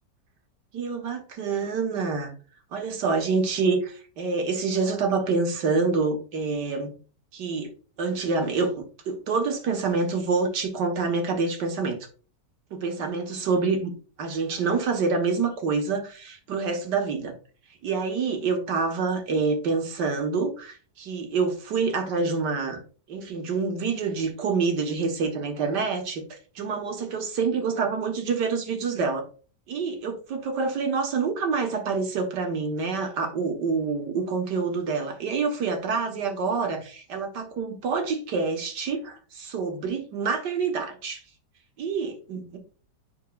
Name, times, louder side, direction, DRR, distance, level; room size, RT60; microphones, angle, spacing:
voice 1, 0.7-2.3 2.7-6.9 7.3-7.7 8.0-12.0 12.7-13.9 14.2-17.3 17.8-22.8 23.1-29.3 29.7-41.2 41.8-42.6, right 4 dB, 80° right, 5 dB, 2.0 m, -27 dB
8.3 x 5.9 x 2.4 m, 0.38 s
omnidirectional pair, 1.8 m